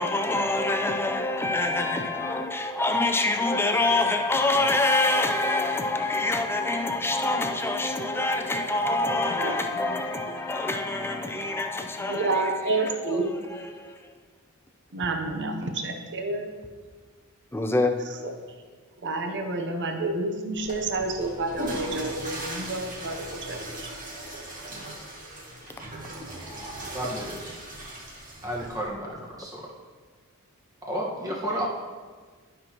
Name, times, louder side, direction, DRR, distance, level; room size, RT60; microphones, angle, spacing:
voice 1, 0.0-12.4 13.7-14.0 17.5-18.0, left 2 dB, 10° left, 0.5 m, -25 dB
voice 2, 9.9-10.4 12.0-13.3 14.9-16.5 19.0-23.9, right 2 dB, 55° right, 0.7 m, -29 dB
Water / Toilet flush, 20.5-28.9, right 1 dB, 40° right, 1.9 m, -38 dB
voice 3, 26.9-27.6 28.4-29.7 30.8-31.7, right 1 dB, 15° right, 1.4 m, -32 dB
12.0 x 5.9 x 3.0 m
head